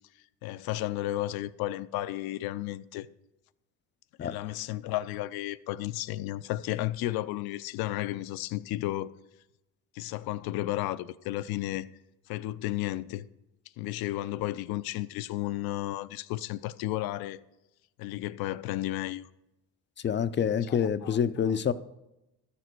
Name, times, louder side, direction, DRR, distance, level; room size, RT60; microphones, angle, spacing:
voice 1, 0.4-3.1 4.2-9.1 9.9-11.9 12.3-13.3 13.8-17.4 18.0-19.3 20.6-21.5, left 15 dB, 75° left, 0.6 m, -33 dB
voice 2, 20.0-21.7, left 8 dB, 30° left, 0.5 m, -27 dB
12.5 x 6.8 x 4.6 m
cardioid pair, 100°, 37 cm